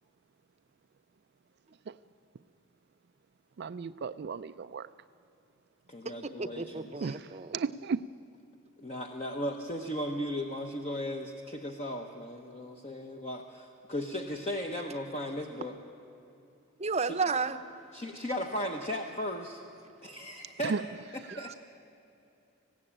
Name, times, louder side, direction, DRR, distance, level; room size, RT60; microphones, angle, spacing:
voice 1, 3.6-4.8 7.0-7.2 7.5-8.0 20.6-20.8, right 5 dB, 50° right, 13 dB, 0.4 m, -33 dB
voice 2, 5.9-7.2 8.8-15.7 17.9-19.6 20.0-20.8 21.1-21.6, equal, 30° left, 3 dB, 1.0 m, -36 dB
voice 3, 6.4-7.6 16.8-17.6, right 4 dB, 30° right, 10 dB, 0.7 m, -32 dB
19.5 x 16.0 x 8.8 m, 2.9 s
head